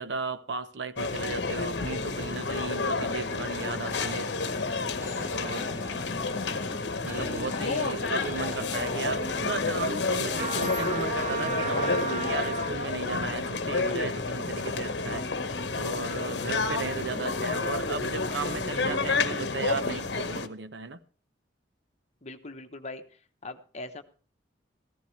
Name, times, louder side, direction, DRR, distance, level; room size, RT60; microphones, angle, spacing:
voice 1, 0.0-4.3 5.2-5.7 7.0-15.3 15.7-21.0, right 4 dB, 75° right, 0.8 m, -35 dB
sound 1, 1.0-20.5, left 3 dB, 70° left, 1.0 m, -30 dB
sound 2, 3.9-12.6, right 1 dB, 15° right, 1.2 m, -46 dB
voice 2, 7.4-8.3 8.9-9.4 22.2-24.0, left 2 dB, 40° left, 1.1 m, -41 dB
Trumpet, 10.3-12.9, right 3 dB, 40° right, 0.9 m, -33 dB
15.0 x 13.5 x 3.2 m
head